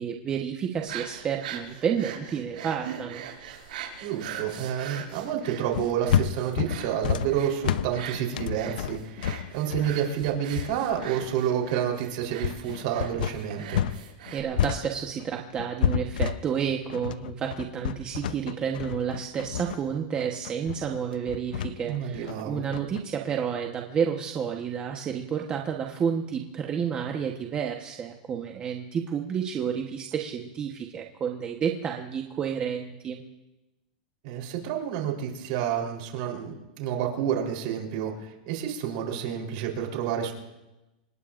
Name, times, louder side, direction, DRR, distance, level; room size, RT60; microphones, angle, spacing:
voice 1, 0.0-3.2 14.3-33.2, right 7 dB, 20° right, 1 dB, 1.1 m, -30 dB
sound 1, 0.7-14.4, right 9 dB, 80° right, 5.3 m, -42 dB
voice 2, 4.0-13.8 21.8-22.6 34.2-40.3, right 9 dB, 55° right, 1 dB, 3.8 m, -29 dB
sound 2, 5.7-14.0 14.3-23.0, left 9 dB, 80° left, 0.7 m, -30 dB
26.5 x 20.5 x 2.6 m, 1.0 s
supercardioid pair, 155°, 5 cm